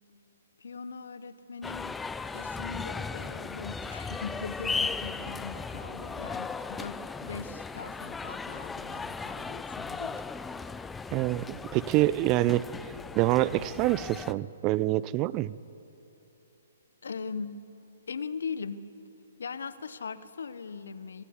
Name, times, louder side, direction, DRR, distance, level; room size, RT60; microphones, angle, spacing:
voice 1, 0.6-2.0 2.3-10.2 17.0-17.6 18.1-18.9 19.4-21.2, left 5 dB, 75° left, 14 dB, 1.3 m, -40 dB
sound 1, 1.6-14.3, left 4 dB, 10° left, 0.6 m, -37 dB
voice 2, 11.1-12.6 13.1-15.6, right 16 dB, 30° right, 19 dB, 0.6 m, -26 dB
25.0 x 19.5 x 9.9 m, 2.8 s
hypercardioid pair, 130°, 0 cm